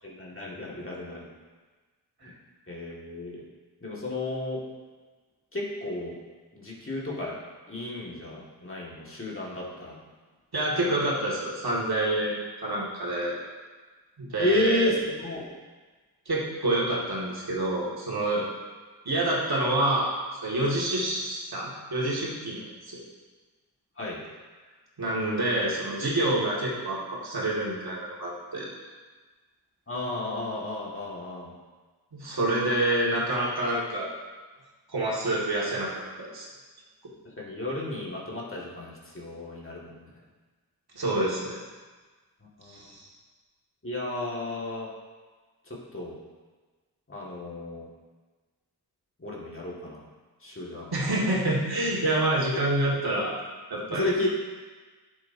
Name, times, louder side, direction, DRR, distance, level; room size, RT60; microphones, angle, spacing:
voice 1, 0.0-1.3 2.2-2.3 2.7-3.4 3.8-4.6 5.5-6.2 6.5-7.4 7.7-10.0 14.4-15.5 24.0-24.2 29.9-31.5 37.2-40.1 42.6-42.8 43.8-44.9 45.7-46.2 47.1-47.9 49.2-50.0 50.4-50.9 52.9-53.0 53.9-54.3, left 1 dB, 30° left, -5 dB, 2.2 m, -32 dB
voice 2, 10.5-13.4 14.2-14.9 16.3-18.4 19.1-23.0 25.0-28.7 32.1-34.1 34.9-35.9 36.2-36.5 40.9-41.6 42.7-43.0 50.9-53.3 53.7-54.1, right 1 dB, 60° right, -5 dB, 2.4 m, -27 dB
10.5 x 7.2 x 2.9 m, 1.4 s
cardioid pair, 55°, 41 cm